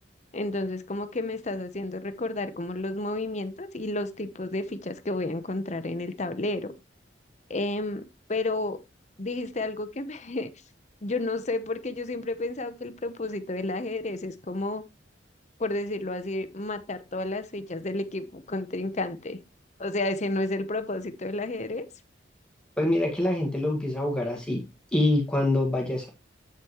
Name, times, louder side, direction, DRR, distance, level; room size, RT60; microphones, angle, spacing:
voice 1, 0.3-6.7 7.5-8.0 8.3-8.8 9.2-10.5 11.0-14.8 15.6-19.4 19.8-21.9, left 2 dB, 40° left, 0.9 m, -31 dB
voice 2, 22.8-24.6 24.9-26.1, left 1 dB, 5° left, 1.8 m, -25 dB
8.2 x 8.2 x 3.1 m
head